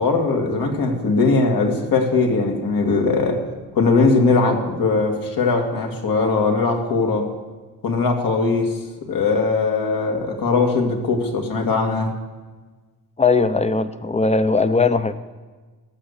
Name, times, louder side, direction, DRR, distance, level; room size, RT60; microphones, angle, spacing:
voice 1, 0.0-3.4 3.7-7.3 7.8-8.7 9.1-12.1, left 3 dB, 65° left, 2 dB, 2.2 m, -20 dB
voice 2, 13.2-15.2, left 4 dB, 20° left, 11 dB, 0.7 m, -19 dB
18.0 x 7.1 x 6.6 m, 1.3 s
cardioid pair, 105°, 37 cm